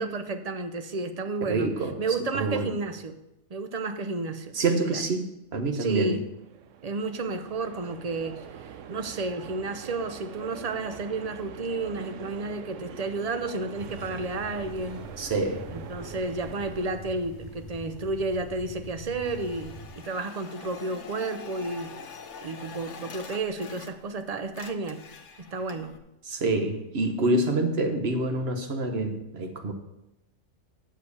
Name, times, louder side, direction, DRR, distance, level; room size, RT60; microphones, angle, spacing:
voice 1, 0.0-1.7 2.0-3.2 3.5-4.5 4.8-5.0 5.7-6.2 6.8-15.0 15.7-19.7 20.0-21.9 22.4-25.0 25.5-25.9, right 3 dB, 40° right, 8 dB, 0.7 m, -32 dB
voice 2, 1.4-2.0 2.3-2.7 4.5-6.3 15.2-15.7 26.2-29.7, right 2 dB, 55° right, 5 dB, 1.3 m, -27 dB
sound 1, 6.1-16.9, right 8 dB, 85° right, 1.0 m, -44 dB
sound 2, 13.7-19.9, equal, 15° right, 3.6 m, -44 dB
sound 3, 19.2-24.2 24.5-26.0, left 5 dB, 75° left, 1.2 m, -44 dB
7.5 x 6.6 x 6.9 m, 0.89 s
omnidirectional pair, 1.3 m